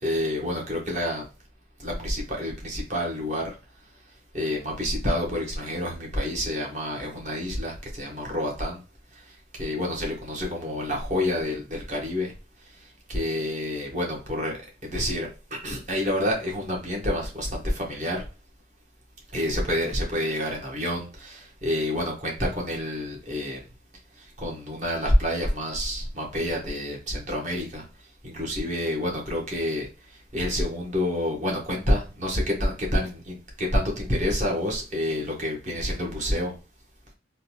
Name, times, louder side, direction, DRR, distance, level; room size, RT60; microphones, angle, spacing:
voice 1, 0.0-1.2 1.8-3.5 4.3-8.8 9.1-12.3 12.8-18.3 19.3-23.6 24.2-27.8 28.2-36.5, left 1 dB, 40° right, 1.2 m, -28 dB
3.6 x 2.3 x 2.9 m
head